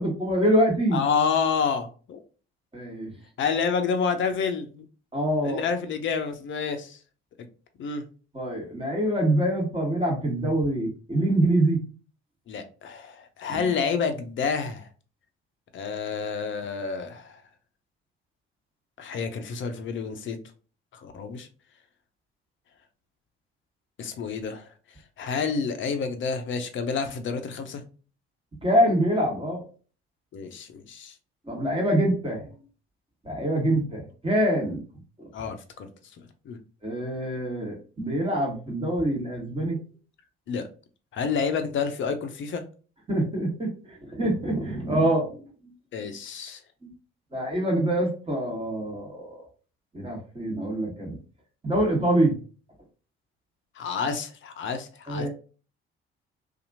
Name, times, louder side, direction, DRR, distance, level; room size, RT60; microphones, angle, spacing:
voice 1, 0.0-1.0 2.7-3.1 5.1-5.6 8.3-11.8 13.5-13.6 28.6-29.6 31.5-32.4 33.2-34.8 36.8-39.8 43.1-45.7 46.0-46.1 47.3-49.4 49.9-51.2 51.6-52.3 55.1-55.3, right 1 dB, 15° right, 1.3 m, -25 dB
voice 2, 0.9-2.2 3.4-4.9 5.4-7.0 7.8-8.0 12.5-14.9 15.7-17.4 19.0-20.4 20.9-21.5 24.0-24.7 25.2-27.8 30.3-31.1 35.3-35.9 36.2-36.6 40.5-40.7 41.1-42.6 45.9-46.6 53.8-55.3, left 5 dB, 40° left, 0.6 m, -29 dB
2.7 x 2.4 x 2.6 m
figure-of-eight pair, 50°, 31 cm